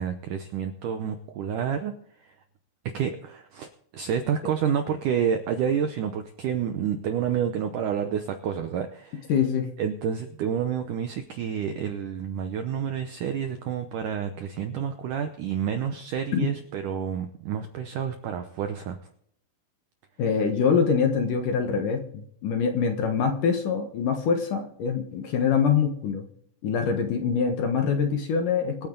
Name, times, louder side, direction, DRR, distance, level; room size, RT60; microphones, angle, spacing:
voice 1, 0.0-1.9 2.2-2.3 2.9-3.7 3.9-9.3 9.8-19.0, right 8 dB, 80° right, 7 dB, 1.8 m, -29 dB
voice 2, 9.3-9.7 16.3-16.5 20.2-26.3 26.6-28.9, left 6 dB, 60° left, 5 dB, 2.4 m, -24 dB
25.0 x 9.0 x 3.9 m, 0.67 s
omnidirectional pair, 5.0 m